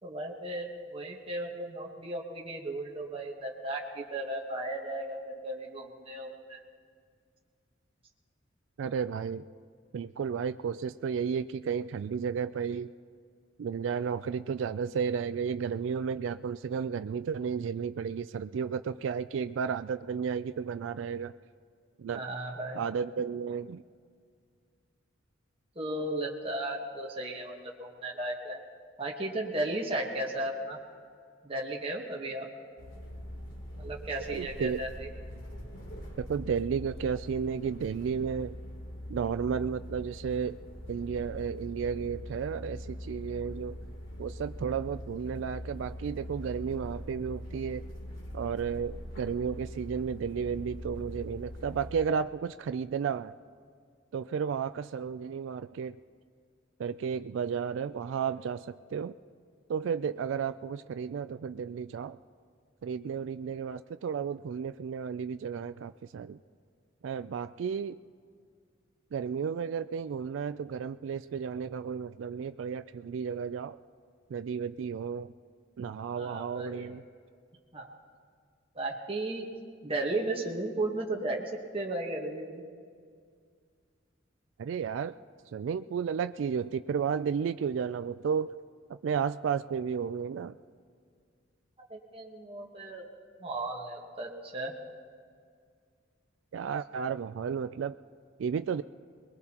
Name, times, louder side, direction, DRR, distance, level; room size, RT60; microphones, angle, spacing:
voice 1, 0.0-6.6 22.1-22.8 25.7-28.6 29.0-30.8 31.4-32.5 33.8-35.1 76.2-76.9 77.7-78.0 78.7-79.5 79.8-82.6 91.9-93.1 93.4-94.7, right 1 dB, 30° right, -1 dB, 1.3 m, -35 dB
voice 2, 8.8-9.4 9.9-12.9 13.6-21.3 22.0-22.2 22.7-23.8 34.3-34.8 36.2-38.6 39.1-40.6 40.9-43.8 44.2-47.9 48.3-53.4 54.1-56.0 56.8-59.1 59.7-62.2 62.8-66.4 67.0-68.0 69.1-73.8 74.3-75.3 75.8-77.0 84.6-85.2 85.5-88.5 88.9-90.6 96.5-98.0 98.4-98.8, right 6 dB, 70° right, 12 dB, 0.3 m, -33 dB
sound 1, 32.8-52.0, equal, 80° left, 3.2 m, -42 dB
22.5 x 21.0 x 2.9 m, 2.1 s
head